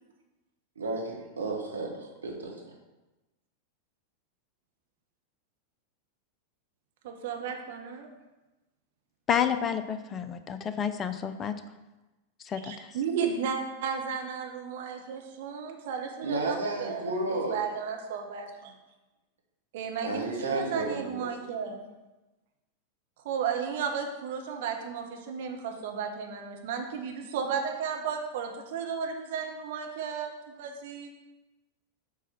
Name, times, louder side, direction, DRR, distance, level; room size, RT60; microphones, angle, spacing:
voice 1, 0.8-2.5 16.2-17.6 20.0-21.3, right 2 dB, 75° right, -1 dB, 1.5 m, -32 dB
voice 2, 7.0-8.1 12.6-18.7 19.7-21.8 23.2-31.1, right 6 dB, 55° right, 3 dB, 1.1 m, -34 dB
voice 3, 9.3-11.6 12.4-12.9, left 8 dB, 25° left, 10 dB, 0.5 m, -30 dB
7.3 x 4.1 x 5.7 m, 1.1 s
figure-of-eight pair, 90°, 0 cm